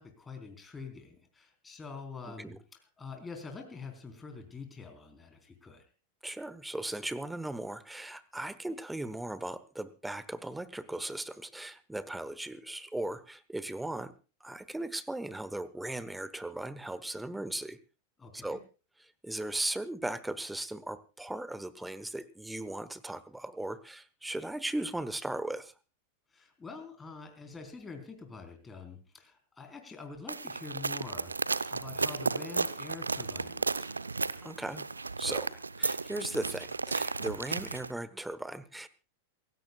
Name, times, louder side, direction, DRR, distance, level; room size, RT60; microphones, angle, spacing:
voice 1, 0.0-2.6 3.0-5.8 18.2-18.6 26.3-33.9, left 4 dB, 15° left, 4 dB, 4.1 m, -46 dB
voice 2, 2.3-2.6 6.2-14.1 14.4-17.8 18.3-18.6 19.0-25.7 34.4-34.9 35.2-38.9, right 1 dB, 5° right, 16 dB, 1.2 m, -37 dB
sound 1, 30.3-37.9, right 4 dB, 80° right, 0.7 m, -34 dB
28.0 x 16.0 x 2.4 m, 0.33 s
figure-of-eight pair, 90°, 0 cm